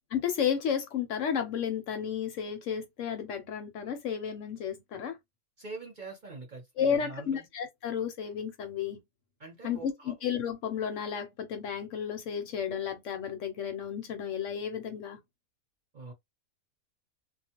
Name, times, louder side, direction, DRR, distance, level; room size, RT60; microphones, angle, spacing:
voice 1, 0.1-5.2 6.8-9.0 9.6-15.2, left 8 dB, 65° left, 0.9 m, -32 dB
voice 2, 5.6-7.5 9.4-10.2 15.9-16.1, right 3 dB, 45° right, 0.7 m, -44 dB
2.4 x 2.1 x 2.8 m
omnidirectional pair, 1.5 m